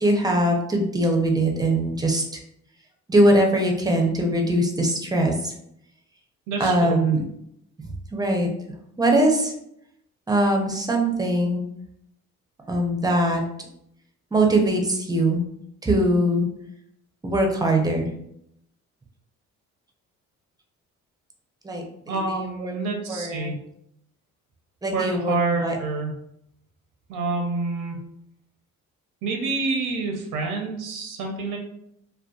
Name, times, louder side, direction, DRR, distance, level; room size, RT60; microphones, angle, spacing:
voice 1, 0.0-2.4 3.1-5.5 6.6-7.2 8.1-8.5 9.0-9.5 10.3-11.6 12.7-13.4 14.3-15.4 15.8-16.5 17.2-18.1 21.6-21.8 22.3-22.7 23.1-23.5 24.8-25.4 25.6-25.8, right 1 dB, 15° right, 2 dB, 0.5 m, -21 dB
voice 2, 6.5-7.0 22.1-23.6 24.9-26.1 27.1-28.0 29.2-31.6, right 3 dB, 90° right, 2 dB, 0.6 m, -27 dB
2.6 x 2.2 x 2.3 m, 0.76 s
cardioid pair, 90°, 30 cm